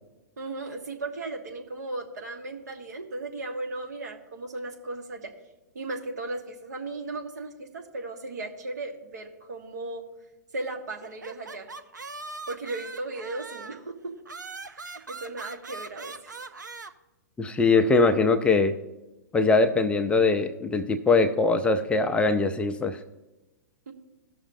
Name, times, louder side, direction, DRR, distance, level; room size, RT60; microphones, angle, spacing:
voice 1, 0.4-5.3 5.7-10.0 10.5-11.7 12.5-13.9 14.7-16.3 23.9-24.0, right 2 dB, 70° right, 4 dB, 1.3 m, -36 dB
sound 1, 11.0-13.8 14.3-16.9, right 3 dB, 85° right, 0.5 m, -41 dB
voice 2, 17.4-18.7 19.3-23.0, left 3 dB, 10° left, 8 dB, 0.4 m, -22 dB
17.5 x 6.3 x 2.6 m, 1.0 s
figure-of-eight pair, 110°, 10 cm